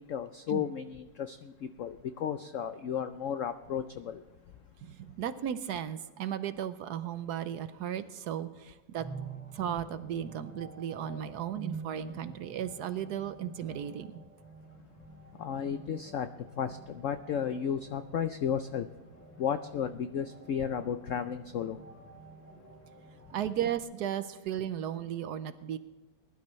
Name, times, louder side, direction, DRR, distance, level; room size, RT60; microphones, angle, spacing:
voice 1, 0.0-4.2 15.4-16.3 16.6-18.9 19.4-21.8, left 8 dB, 85° left, 10 dB, 0.6 m, -33 dB
voice 2, 4.8-9.1 9.5-14.2 23.3-25.8, right 10 dB, 70° right, 12 dB, 1.1 m, -35 dB
sound 1, 9.0-23.8, right 3 dB, 10° left, 3.6 m, -48 dB
20.5 x 11.5 x 3.1 m, 1.2 s
omnidirectional pair, 2.0 m